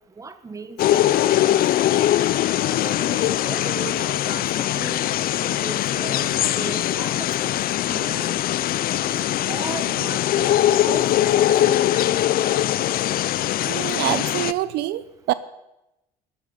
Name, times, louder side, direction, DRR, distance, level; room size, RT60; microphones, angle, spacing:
voice 1, 0.2-1.6 2.6-5.1 5.4-8.4 9.1-10.6 10.9-11.1 11.5-12.3, right 4 dB, 20° right, 12 dB, 1.0 m, -37 dB
sound 1, 0.8-14.5, left 13 dB, 60° left, 0.5 m, -21 dB
voice 2, 13.7-15.3, right 15 dB, 80° right, 16 dB, 0.6 m, -25 dB
13.0 x 11.5 x 5.1 m, 0.91 s
cardioid pair, 110°, 17 cm